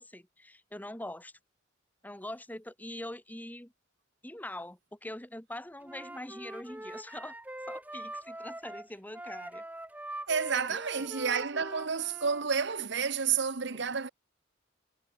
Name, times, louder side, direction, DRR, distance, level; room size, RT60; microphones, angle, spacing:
voice 1, 0.0-1.3 2.0-3.7 4.2-7.4 7.7-9.6 10.7-11.1 13.7-13.8, left 1 dB, 10° left, 2.0 m, -43 dB
Wind instrument woodwind instrument, 5.8-12.4, right 1 dB, 10° right, 4.1 m, -43 dB
voice 2, 10.3-14.1, right 6 dB, 65° right, 1.1 m, -30 dB
head